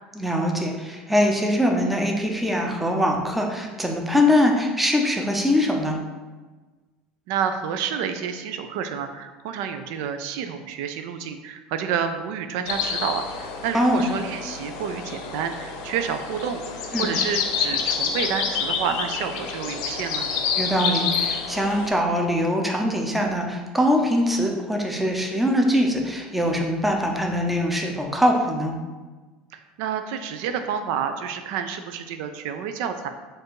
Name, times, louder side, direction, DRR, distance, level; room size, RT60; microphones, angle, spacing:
voice 1, 0.2-6.0 13.7-14.0 16.9-17.1 20.6-28.8, equal, 5° right, 1 dB, 0.6 m, -22 dB
voice 2, 7.3-20.3 29.5-33.1, right 7 dB, 75° right, 7 dB, 0.3 m, -29 dB
sound 1, 12.7-21.9, left 6 dB, 85° left, 0.6 m, -28 dB
4.4 x 2.5 x 4.7 m, 1.3 s
cardioid pair, 130°, 3 cm